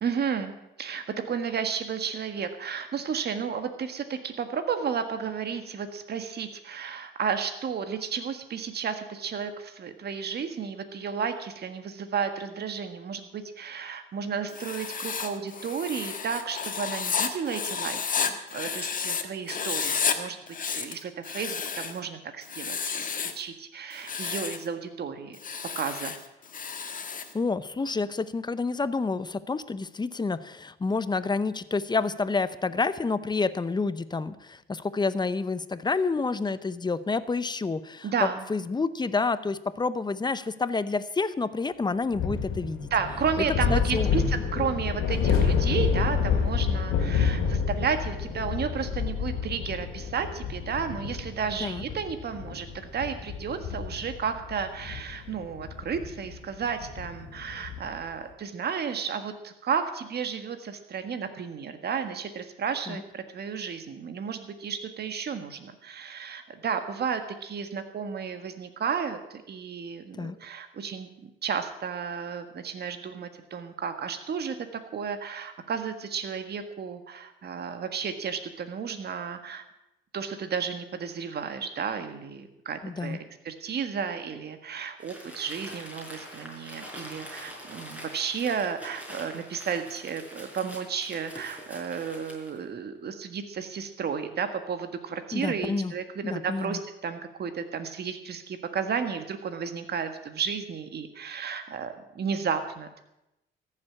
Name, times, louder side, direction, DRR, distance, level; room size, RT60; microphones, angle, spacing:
voice 1, 0.0-23.1 23.3-25.4 25.7-26.1 38.0-38.4 42.9-79.6 80.1-103.0, right 6 dB, 55° right, 8 dB, 1.6 m, -33 dB
Writing, 14.5-19.2 19.5-20.2 20.5-22.0 22.4-23.4 23.9-24.6 25.3-27.3, left 6 dB, 45° left, 1.5 m, -31 dB
voice 2, 27.3-42.9 43.7-44.1 51.6-51.8 62.9-63.0 70.2-70.4 82.8-83.2 95.3-95.9 96.2-96.8, left 4 dB, 20° left, 14 dB, 0.7 m, -29 dB
sound 1, 42.1-58.0, left 6 dB, 90° left, 2.2 m, -29 dB
Crumpling crinkling, 85.0-92.6, equal, 5° right, 5.0 m, -44 dB
14.5 x 7.4 x 8.7 m, 0.89 s
cardioid pair, 90°, 20 cm